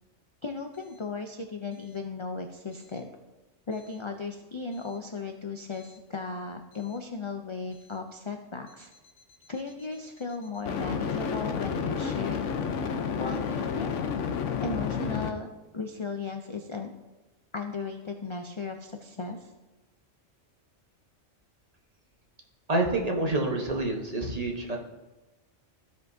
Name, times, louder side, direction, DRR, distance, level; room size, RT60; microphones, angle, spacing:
voice 1, 0.4-3.1 3.7-8.9 9.5-12.4 13.2-13.9 14.6-15.5 15.7-16.9 17.5-19.5, left 4 dB, 50° left, 4 dB, 0.3 m, -36 dB
sound 1, 5.8-5.9 10.7-15.3, left 6 dB, 75° left, 1.0 m, -30 dB
voice 2, 22.7-24.8, right 2 dB, 35° right, 1 dB, 1.1 m, -27 dB
15.0 x 5.3 x 2.7 m, 1.1 s
omnidirectional pair, 1.3 m